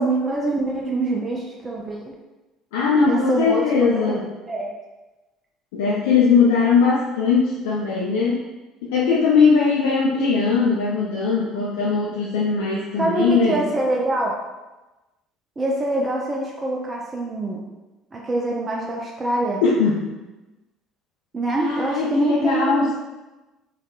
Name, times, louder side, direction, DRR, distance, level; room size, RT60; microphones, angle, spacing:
voice 1, 0.0-2.1 3.1-3.6 3.9-4.7 13.0-14.3 15.6-17.7 18.1-19.6 21.3-22.9, right 2 dB, 25° right, -2 dB, 0.4 m, -25 dB
voice 2, 2.7-4.3 5.7-8.5 8.9-13.6 19.6-20.1 21.6-22.9, left 5 dB, 70° left, -6 dB, 0.4 m, -20 dB
3.4 x 2.2 x 2.3 m, 1.1 s
figure-of-eight pair, 60°, 0 cm